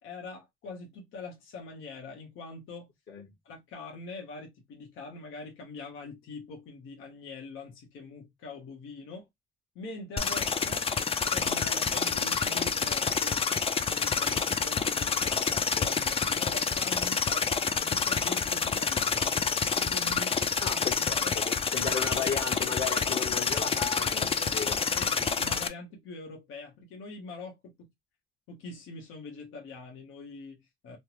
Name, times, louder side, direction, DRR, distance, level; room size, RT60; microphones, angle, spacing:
voice 1, 0.0-2.9 3.4-9.3 9.7-10.9 11.3-13.5 13.7-19.4 19.7-20.4 20.7-21.3 24.4-24.6 24.9-27.9 28.5-31.0, left 3 dB, 85° left, 1.1 m, -43 dB
sound 1, 10.2-25.7, left 5 dB, 30° left, 0.4 m, -28 dB
voice 2, 20.6-24.8, left 6 dB, 60° left, 1.2 m, -35 dB
3.3 x 2.1 x 2.9 m
cardioid pair, 90°, 20 cm